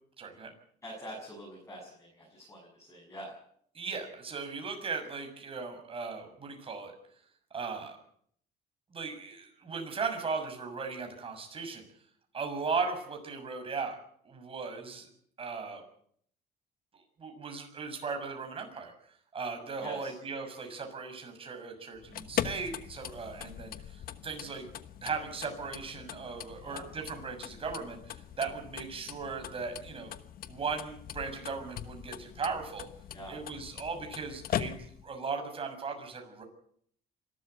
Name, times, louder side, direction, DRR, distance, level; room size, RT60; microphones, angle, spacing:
voice 1, 0.2-0.5 3.7-6.9 7.5-8.0 8.9-11.8 12.3-14.0 14.2-15.1 15.4-15.8 16.9-18.9 19.3-24.6 25.0-30.1 30.5-32.9 33.3-36.4, right 4 dB, 35° right, 4 dB, 6.6 m, -37 dB
voice 2, 0.8-3.3 19.8-20.2 26.6-26.9 33.1-33.4, right 1 dB, 15° left, -2 dB, 7.3 m, -45 dB
sound 1, 22.0-35.1, left 10 dB, 60° left, 1.2 m, -41 dB
26.5 x 13.0 x 8.0 m, 0.64 s
cardioid pair, 110°, 17 cm